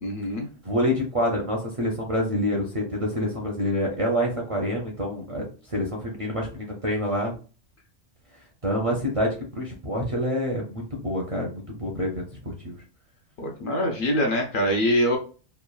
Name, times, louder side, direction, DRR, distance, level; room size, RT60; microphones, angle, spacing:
voice 1, 0.0-0.5 13.4-15.2, equal, 60° left, 2 dB, 0.6 m, -24 dB
voice 2, 0.6-7.3 8.6-12.7, equal, 45° right, -1 dB, 0.5 m, -27 dB
3.1 x 2.2 x 2.3 m, 0.36 s
omnidirectional pair, 1.1 m